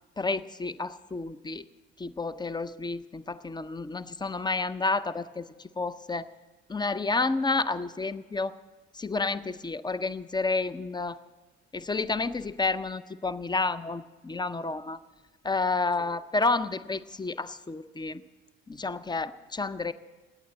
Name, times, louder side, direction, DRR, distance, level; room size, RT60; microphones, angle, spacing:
voice 1, 0.2-1.7 2.0-6.3 6.7-8.5 8.9-11.2 11.7-15.0 15.4-18.2 18.7-19.9, left 3 dB, 10° left, 16 dB, 0.6 m, -30 dB
18.0 x 10.5 x 7.7 m, 1.3 s
figure-of-eight pair, 50°, 36 cm